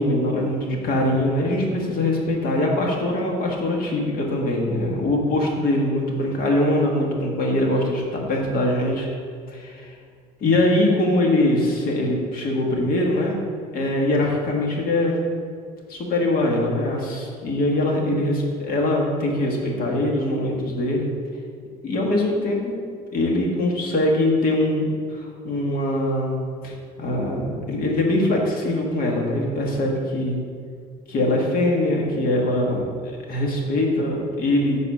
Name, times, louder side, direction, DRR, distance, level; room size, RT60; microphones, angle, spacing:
voice 1, 0.0-9.1 9.5-9.9 10.4-13.4 13.7-15.2 15.9-18.3 18.6-21.1 21.8-22.8 23.1-26.4 26.6-30.4 31.1-34.8, left 1 dB, 60° left, -1 dB, 1.6 m, -22 dB
6.8 x 4.1 x 6.2 m, 2.1 s
cardioid pair, 110°, 17 cm